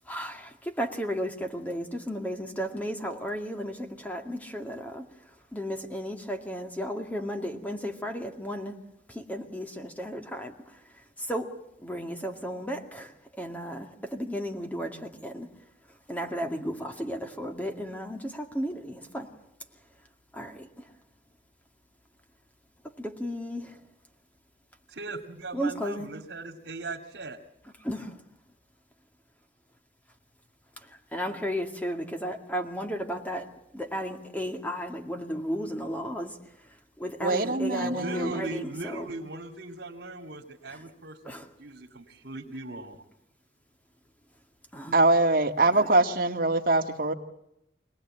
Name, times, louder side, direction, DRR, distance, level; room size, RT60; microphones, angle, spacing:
voice 1, 0.1-5.0 5.5-8.7 9.2-10.5 11.3-11.5 11.8-13.1 13.4-15.5 16.1-19.3 20.3-20.7 23.0-23.7 25.5-26.1 27.8-28.1 31.1-33.5 33.7-36.3 37.0-38.6 38.9-39.0 41.3-41.4 44.7-44.9, equal, 10° left, 5 dB, 2.1 m, -34 dB
voice 2, 24.9-27.4 37.8-43.0, right 2 dB, 75° right, 1 dB, 2.3 m, -39 dB
voice 3, 37.2-38.4 44.9-47.1, right 2 dB, 50° right, 3 dB, 2.0 m, -23 dB
26.0 x 19.0 x 8.8 m, 0.82 s
head